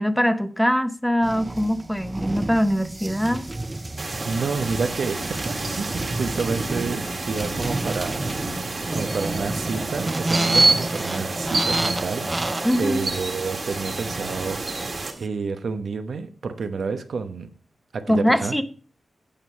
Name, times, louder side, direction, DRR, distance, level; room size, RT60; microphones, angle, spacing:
voice 1, 0.0-3.5 12.6-13.1 18.1-18.6, equal, ahead, 0.7 m, -22 dB
sound 1, 1.2-15.2, right 2 dB, 15° right, 0.4 m, -31 dB
sound 2, 4.0-15.1, right 3 dB, 40° right, 1.7 m, -28 dB
voice 2, 4.3-8.3 8.9-12.3 12.8-17.5 17.9-18.6, right 4 dB, 65° right, 0.9 m, -29 dB
9.0 x 7.3 x 4.6 m
wide cardioid pair, 170°, 0 cm